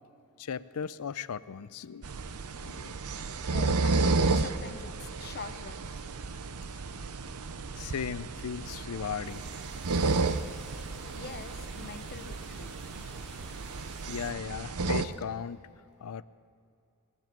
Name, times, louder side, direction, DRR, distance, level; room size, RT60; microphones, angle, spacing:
voice 1, 0.4-2.1 2.6-2.9 7.7-9.4 14.1-15.6 16.0-16.2, left 7 dB, 80° left, 16 dB, 0.5 m, -37 dB
sound 1, 2.0-15.0, right 3 dB, 80° right, 0.7 m, -32 dB
voice 2, 3.5-4.0 4.4-6.0 11.1-12.7, left 4 dB, 45° left, 10 dB, 0.8 m, -44 dB
sound 2, 9.2-14.3, left 1 dB, ahead, 2.4 m, -53 dB
19.5 x 7.4 x 9.1 m, 2.6 s
head